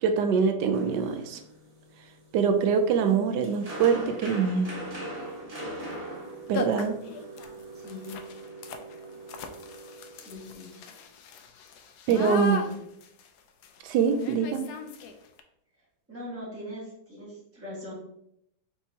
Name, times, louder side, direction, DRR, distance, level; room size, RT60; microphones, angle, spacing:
voice 1, 0.0-1.4 2.3-4.7 6.5-7.0 12.1-12.6 13.8-14.7, right 6 dB, 75° right, 8 dB, 1.1 m, -24 dB
sound 1, 0.7-10.9, right 1 dB, 55° right, 0.4 m, -41 dB
sound 2, 3.1-3.2 3.7-4.1 5.8-6.0 6.2-6.3 6.5-15.4, left 4 dB, 70° left, 1.0 m, -38 dB
voice 2, 7.7-8.1 10.1-10.7 12.4-12.8 16.1-17.9, left 1 dB, 10° right, -7 dB, 1.3 m, -41 dB
4.4 x 4.4 x 2.7 m, 0.78 s
omnidirectional pair, 2.0 m